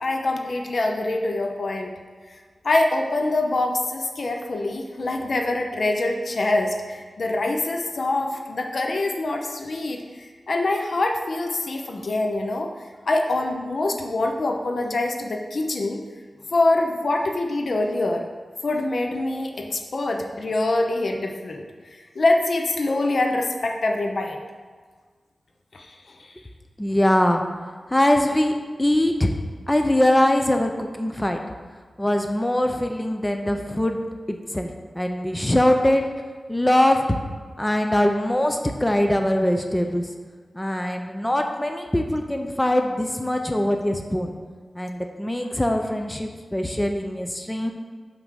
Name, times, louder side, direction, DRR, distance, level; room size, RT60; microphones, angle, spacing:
voice 1, 0.0-1.9 2.3-2.4 2.6-12.7 13.1-16.0 16.5-18.3 18.6-21.6 21.9-24.4 25.7-26.3, left 2 dB, 65° left, 2 dB, 0.9 m, -25 dB
voice 2, 26.8-27.4 27.9-29.3 29.7-31.4 32.0-34.0 34.3-36.1 36.5-37.2 37.6-40.1 40.5-44.3 44.7-47.7, left 1 dB, 15° left, 4 dB, 0.7 m, -22 dB
5.7 x 5.3 x 6.3 m, 1.5 s
cardioid pair, 60°, 0 cm